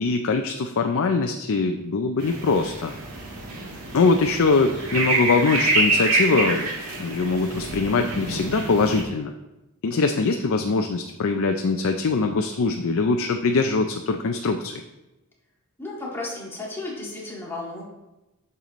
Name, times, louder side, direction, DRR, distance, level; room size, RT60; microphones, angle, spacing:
voice 1, 0.0-2.9 3.9-6.7 7.0-9.3 9.8-14.8, left 4 dB, 65° left, 5 dB, 0.5 m, -22 dB
sound 1, 2.2-9.0, right 2 dB, 85° right, 1.9 m, -26 dB
voice 2, 15.8-17.8, left 2 dB, 10° left, -5 dB, 2.0 m, -33 dB
8.8 x 6.8 x 3.1 m, 0.99 s
head